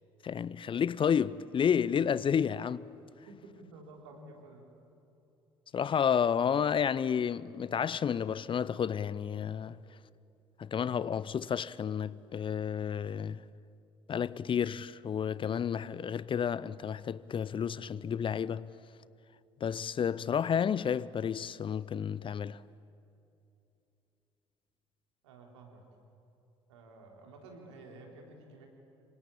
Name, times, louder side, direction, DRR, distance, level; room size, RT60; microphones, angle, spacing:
voice 1, 0.2-2.9 5.7-9.8 10.6-13.4 14.1-18.7 19.6-22.6, left 7 dB, 35° left, 0.6 m, -31 dB
voice 2, 3.3-4.7 25.2-25.8 26.7-28.7, right 2 dB, 75° right, 3.8 m, -51 dB
26.5 x 25.0 x 8.7 m
figure-of-eight pair, 50°, 15 cm